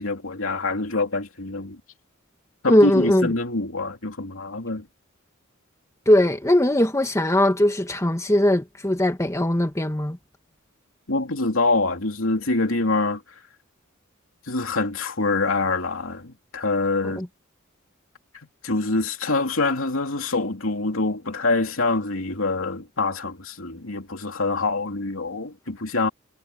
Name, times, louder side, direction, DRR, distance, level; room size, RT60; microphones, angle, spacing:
voice 1, 0.0-1.8 2.6-4.8 11.1-13.2 14.5-17.2 18.6-26.1, left 3 dB, 70° left, 3.0 m, -25 dB
voice 2, 2.7-3.3 6.1-10.2 17.2-17.3, left 1 dB, 15° left, 1.8 m, -20 dB
head